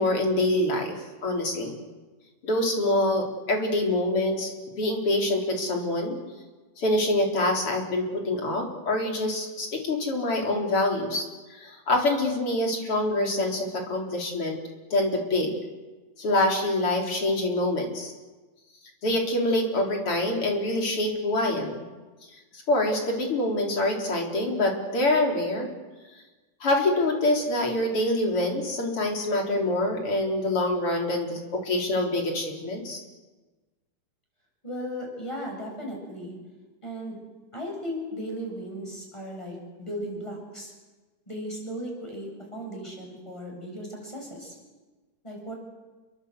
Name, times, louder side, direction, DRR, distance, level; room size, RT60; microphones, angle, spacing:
voice 1, 0.0-1.8 2.4-4.5 4.8-6.2 6.8-14.6 14.9-15.5 16.2-18.1 19.0-21.8 22.5-25.7 26.6-33.0, left 1 dB, 40° left, 1 dB, 4.7 m, -25 dB
voice 2, 34.6-36.4 36.8-37.2 37.5-40.7 41.3-44.5 45.2-45.5, equal, 10° left, 0 dB, 7.8 m, -36 dB
29.0 x 22.5 x 8.2 m, 1.3 s
omnidirectional pair, 3.7 m